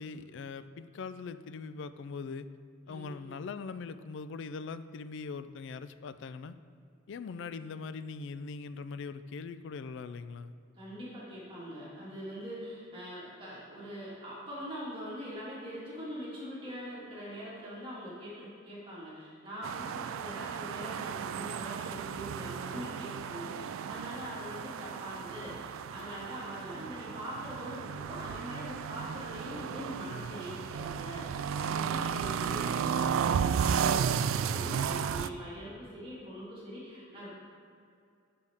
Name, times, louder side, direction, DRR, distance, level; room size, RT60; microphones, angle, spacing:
voice 1, 0.0-2.5 2.9-6.6 7.1-10.5, left 4 dB, 65° left, 12 dB, 0.3 m, -41 dB
voice 2, 2.9-3.3 10.8-37.3, equal, 25° right, -8 dB, 2.1 m, -43 dB
sound 1, 19.6-35.3, right 7 dB, 80° right, 0.3 m, -34 dB
9.5 x 6.7 x 3.5 m, 2.4 s
head